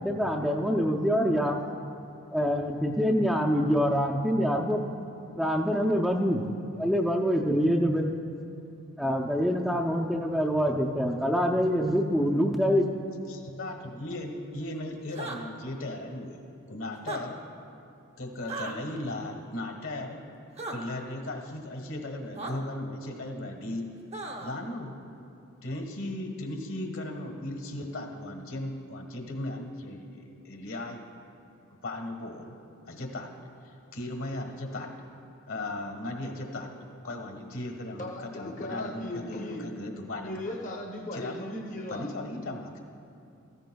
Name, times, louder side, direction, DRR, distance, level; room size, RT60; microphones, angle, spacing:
voice 1, 0.0-1.6 2.3-4.8 5.4-6.4 6.8-8.1 9.0-12.9, equal, ahead, -1 dB, 0.4 m, -25 dB
voice 2, 13.3-17.4 18.2-20.2 20.7-23.9 24.4-25.0 25.6-31.0 31.8-32.6 32.9-33.3 33.6-34.9 35.5-36.7 37.0-40.4 41.1-41.6 41.9-42.8, left 1 dB, 65° left, 2 dB, 1.4 m, -37 dB
sound 1, 15.1-15.4 17.0-17.2 18.5-18.7 20.6-20.8 22.4-22.5 24.1-24.5, right 3 dB, 30° right, 0.8 m, -36 dB
voice 3, 38.0-39.7 40.2-42.1, left 1 dB, 35° left, -1 dB, 0.8 m, -37 dB
15.5 x 14.5 x 2.3 m, 2.6 s
head